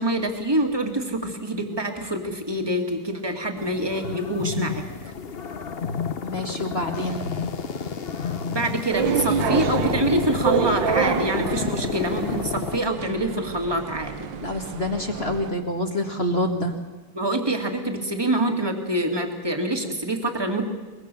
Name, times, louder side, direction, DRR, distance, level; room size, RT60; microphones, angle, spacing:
voice 1, 0.0-4.8 8.5-14.3 17.1-20.6, right 1 dB, 10° right, 4 dB, 2.0 m, -26 dB
sound 1, 3.6-12.8, left 6 dB, 50° left, 0.7 m, -30 dB
voice 2, 6.2-7.4 14.4-16.7, left 1 dB, 30° left, 4 dB, 1.6 m, -27 dB
sound 2, 8.9-15.5, right 8 dB, 65° right, 1.5 m, -28 dB
23.0 x 21.5 x 6.9 m, 1.2 s
omnidirectional pair, 2.4 m